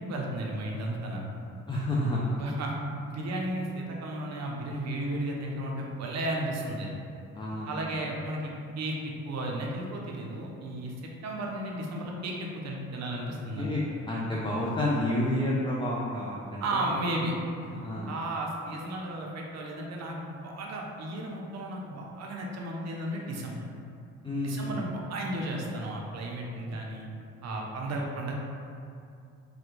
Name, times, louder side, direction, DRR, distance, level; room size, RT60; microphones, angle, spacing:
voice 1, 0.1-1.2 2.3-2.8 3.1-6.9 7.7-13.7 16.6-17.3 18.1-23.6 24.4-27.1 27.4-28.3, right 1 dB, 60° right, -1 dB, 0.5 m, -34 dB
voice 2, 1.7-2.3 7.3-7.7 8.0-8.1 13.6-13.8 14.1-17.0 17.8-18.1 24.2-24.9 27.5-27.7, left 1 dB, 15° left, -5 dB, 0.3 m, -30 dB
3.3 x 2.2 x 3.0 m, 2.5 s
cardioid pair, 90°, 30 cm